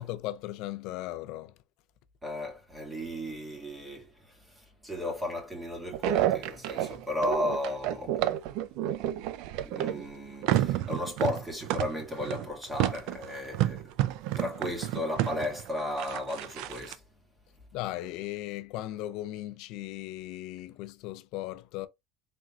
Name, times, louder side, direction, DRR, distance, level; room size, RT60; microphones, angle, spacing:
voice 1, 0.0-1.5 17.7-21.9, left 15 dB, 70° left, 0.5 m, -37 dB
voice 2, 2.2-8.2 9.6-13.9 14.3-17.0, left 1 dB, 10° right, 2.1 m, -35 dB
sound 1, 5.9-10.1 10.4-16.9, right 13 dB, 70° right, 0.4 m, -30 dB
4.4 x 3.6 x 2.4 m
supercardioid pair, 115°, 0 cm